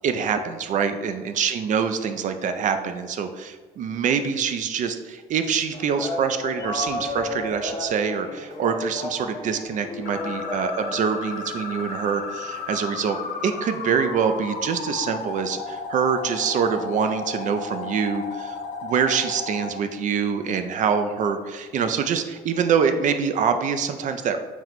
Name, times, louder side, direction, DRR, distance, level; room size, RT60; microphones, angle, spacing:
voice 1, 0.0-13.2 13.4-18.6 18.8-24.4, right 6 dB, 50° right, 8 dB, 0.4 m, -25 dB
sound 1, 5.7-13.7, left 2 dB, 20° left, 0.8 m, -34 dB
sound 2, 10.0-19.7, left 4 dB, 70° left, 0.5 m, -34 dB
4.4 x 2.2 x 4.0 m, 1.3 s
cardioid pair, 110°, 17 cm